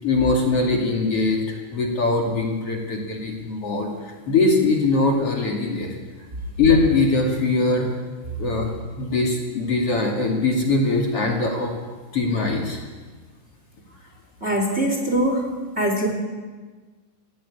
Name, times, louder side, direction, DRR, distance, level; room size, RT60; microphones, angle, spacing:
voice 1, 0.0-5.9 6.6-7.9 8.4-8.7 9.0-11.7 12.1-12.8, left 3 dB, 45° left, 0 dB, 3.3 m, -21 dB
voice 2, 14.4-15.5 15.8-16.1, right 1 dB, 20° right, 2 dB, 3.2 m, -22 dB
21.0 x 16.0 x 8.8 m, 1.4 s
omnidirectional pair, 3.9 m